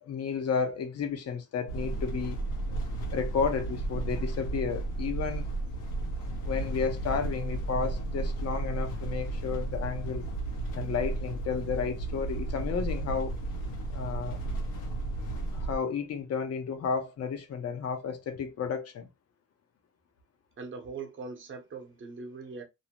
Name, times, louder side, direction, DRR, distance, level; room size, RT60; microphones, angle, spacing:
voice 1, 0.0-2.4 3.1-5.5 6.4-10.2 10.7-13.3 13.9-14.4 15.5-19.1, left 6 dB, 55° left, 0.7 m, -32 dB
sound 1, 1.7-15.8, right 2 dB, 90° left, 0.9 m, -33 dB
voice 2, 20.6-22.6, right 4 dB, 40° right, 0.8 m, -41 dB
2.6 x 2.0 x 2.8 m
cardioid pair, 90°, 30 cm